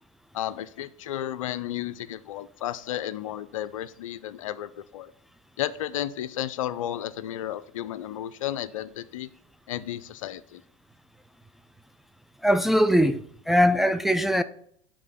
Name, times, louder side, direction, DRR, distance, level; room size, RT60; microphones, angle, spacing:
voice 1, 0.3-5.1 5.6-9.3 9.7-10.6, left 12 dB, 75° left, 0.4 m, -33 dB
voice 2, 12.4-14.4, equal, ahead, 0.3 m, -21 dB
6.6 x 3.7 x 5.1 m
hypercardioid pair, 80°, 17 cm